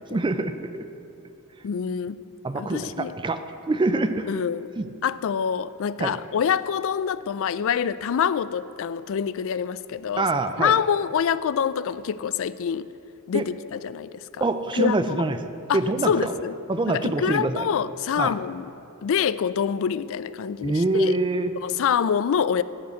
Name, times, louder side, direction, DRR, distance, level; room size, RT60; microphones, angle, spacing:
voice 1, 0.1-0.9 2.4-3.4 3.7-4.3 4.8-4.9 6.0-6.2 10.2-10.8 13.3-13.4 14.4-15.4 15.7-16.3 16.7-17.7 18.2-18.3 20.6-21.5, right 2 dB, 20° right, 10 dB, 0.4 m, -25 dB
voice 2, 1.6-2.2 2.6-3.1 4.3-4.7 5.0-10.3 10.6-12.9 13.3-14.5 14.8-15.2 15.7-15.8 16.1-16.5 16.9-18.6 19.0-21.2 21.6-22.6, left 7 dB, 60° left, 16 dB, 0.4 m, -26 dB
15.0 x 5.2 x 8.1 m, 2.7 s
head